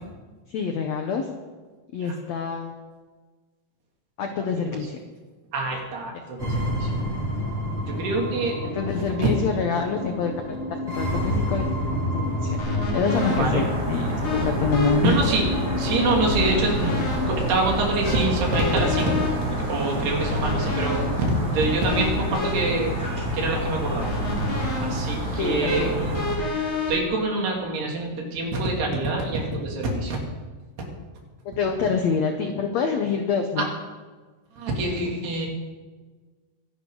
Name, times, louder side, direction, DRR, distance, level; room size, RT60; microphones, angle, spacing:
voice 1, 0.5-1.3 1.9-2.8 4.2-5.0 8.7-10.6 10.9-11.7 12.1-12.6 12.9-14.1 14.3-15.2 25.4-25.9 31.4-33.7, left 5 dB, 85° left, 5 dB, 1.5 m, -26 dB
voice 2, 5.5-6.9 7.9-8.6 8.9-9.3 13.3-13.6 15.0-15.5 15.8-17.0 17.3-23.0 23.3-24.1 24.8-26.3 26.9-30.2 30.8-30.9 33.6-33.7 34.5-35.5, right 2 dB, 85° right, -1 dB, 4.8 m, -26 dB
sound 1, 6.4-20.4, left 1 dB, 20° left, 4.9 m, -30 dB
sound 2, 12.6-27.8, left 2 dB, 65° left, 4.8 m, -31 dB
sound 3, 13.1-26.4, equal, 25° right, 4.1 m, -28 dB
23.5 x 12.0 x 3.9 m, 1.4 s
omnidirectional pair, 4.5 m